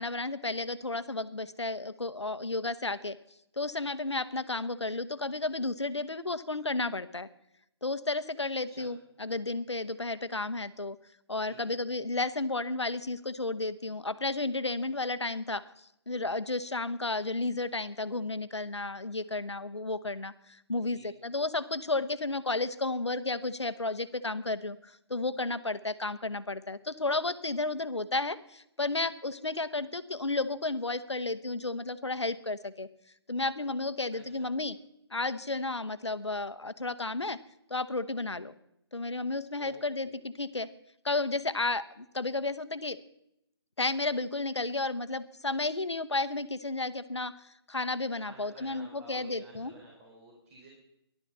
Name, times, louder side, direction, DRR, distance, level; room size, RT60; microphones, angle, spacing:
voice 1, 0.0-3.2 3.6-7.3 7.8-11.0 11.3-15.6 16.1-32.9 33.3-34.8 35.1-37.4 37.7-38.5 38.9-40.7 41.0-43.0 43.8-49.7, left 2 dB, 90° left, 12 dB, 0.9 m, -32 dB
voice 2, 34.1-34.5 39.6-40.2 48.2-50.7, right 2 dB, 30° right, -2 dB, 3.9 m, -52 dB
13.0 x 11.5 x 6.9 m, 0.80 s
figure-of-eight pair, 145°, 14 cm